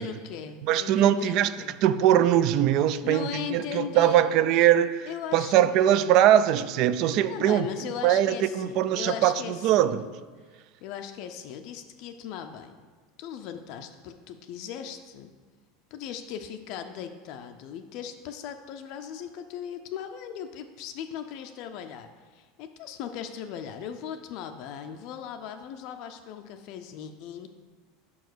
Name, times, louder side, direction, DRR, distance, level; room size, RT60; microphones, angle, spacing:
voice 1, 0.0-1.8 3.0-4.2 5.1-5.8 7.3-10.0 10.8-12.8 13.2-15.3 15.9-27.5, left 8 dB, 50° left, 7 dB, 0.4 m, -38 dB
voice 2, 0.6-1.5 1.8-7.7 8.0-10.1, right 11 dB, 50° right, 14 dB, 0.3 m, -22 dB
5.5 x 4.7 x 6.2 m, 1.4 s
supercardioid pair, 150°, 0 cm